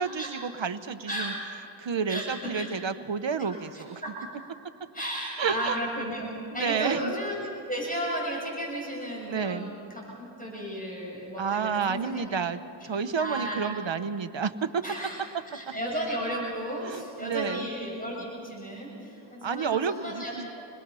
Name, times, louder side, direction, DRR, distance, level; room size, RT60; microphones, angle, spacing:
voice 1, 0.0-1.3 1.8-4.0 5.4-5.8 6.5-7.1 9.3-9.7 11.4-14.8 16.8-17.7 19.4-20.5, right 6 dB, 65° right, 11 dB, 1.1 m, -30 dB
voice 2, 2.1-2.7 3.4-4.1 4.4-4.5 4.9-6.3 6.5-12.3 13.2-13.7 14.8-15.2 15.5-20.6, equal, 15° left, -3 dB, 7.4 m, -34 dB
28.0 x 21.0 x 5.6 m, 2.9 s
cardioid pair, 45°, 48 cm